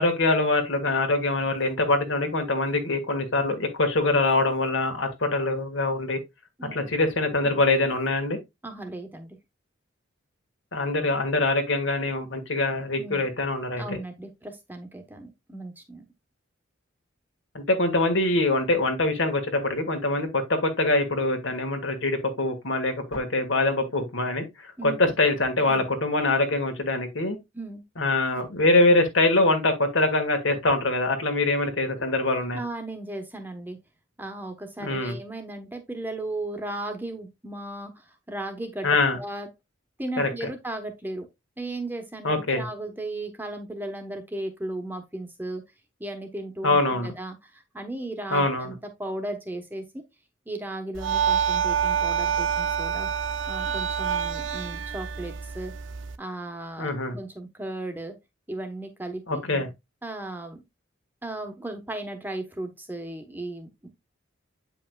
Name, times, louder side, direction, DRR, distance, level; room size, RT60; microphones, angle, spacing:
voice 1, 0.0-6.2 6.7-8.4 10.7-14.0 17.5-27.4 28.0-32.6 34.8-35.2 38.8-39.2 40.2-40.5 42.2-42.7 46.6-47.1 48.3-48.8 56.8-57.2 59.3-59.7, left 2 dB, 70° left, 1.8 m, -24 dB
voice 2, 8.6-9.4 12.9-13.2 13.8-16.0 24.8-25.1 27.5-27.8 32.5-33.8 34.2-38.9 39.2-39.5 40.0-41.3 41.6-45.6 46.0-50.0 50.5-53.1 53.5-55.7 56.2-58.1 58.5-59.4 60.0-60.6 61.2-63.7, right 2 dB, 10° right, 1.0 m, -36 dB
sound 1, 50.9-56.2, right 7 dB, 70° right, 0.6 m, -27 dB
8.3 x 5.5 x 2.3 m
head